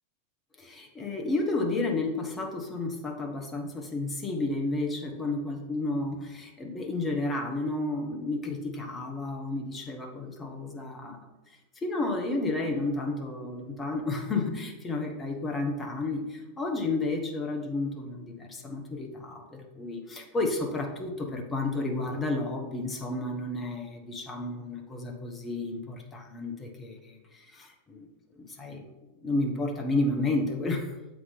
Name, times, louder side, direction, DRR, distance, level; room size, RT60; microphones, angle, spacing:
voice 1, 0.6-11.3 11.8-28.1 28.4-28.9 29.2-30.9, left 2 dB, 20° left, 3 dB, 1.2 m, -31 dB
7.8 x 4.7 x 4.0 m, 1.1 s
figure-of-eight pair, 90°, 0 cm